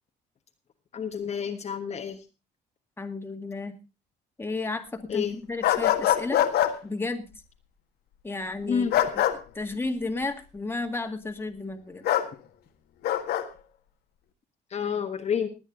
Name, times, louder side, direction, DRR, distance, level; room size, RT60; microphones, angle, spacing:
voice 1, 0.9-2.2 5.1-5.3 8.6-8.9 14.7-15.5, left 7 dB, 40° left, 4 dB, 1.4 m, -29 dB
voice 2, 3.0-3.8 4.4-6.4 6.8-7.2 8.2-9.2 9.5-12.0, left 3 dB, 15° left, 5 dB, 2.0 m, -33 dB
sound 1, 5.6-6.7 8.9-9.3 12.0-12.3 13.0-13.4, left 12 dB, 75° left, 1.7 m, -23 dB
20.5 x 9.0 x 3.8 m, 0.29 s
cardioid pair, 110°, 17 cm